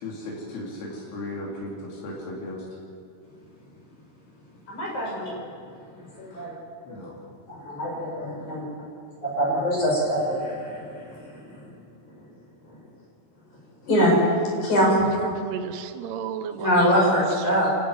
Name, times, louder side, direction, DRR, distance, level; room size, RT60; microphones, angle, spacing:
voice 1, 0.0-2.6 6.3-6.5 6.9-7.2, left 1 dB, 90° left, -3 dB, 4.9 m, -36 dB
voice 2, 4.7-5.3 6.2-6.5 6.9-7.0 7.5-8.6 9.2-11.6 13.8-14.2 14.6-15.0 16.6-17.7, equal, 50° left, -3 dB, 7.1 m, -24 dB
voice 3, 14.7-17.2 17.5-17.7, right 8 dB, 90° right, 9 dB, 3.0 m, -34 dB
27.5 x 10.5 x 9.5 m, 2.5 s
omnidirectional pair, 4.5 m